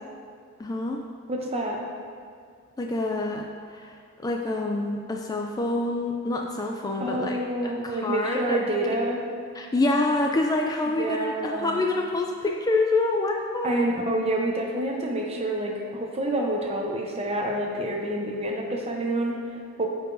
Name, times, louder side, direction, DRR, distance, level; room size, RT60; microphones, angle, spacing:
voice 1, 0.6-1.0 2.8-3.4 3.7-4.0 4.2-7.4 7.6-8.6 9.5-13.9, left 2 dB, 20° left, 1 dB, 0.3 m, -26 dB
voice 2, 1.3-1.8 7.0-9.2 11.0-11.8 13.6-19.9, right 1 dB, 30° right, 0 dB, 0.7 m, -28 dB
9.2 x 4.8 x 2.6 m, 2.2 s
head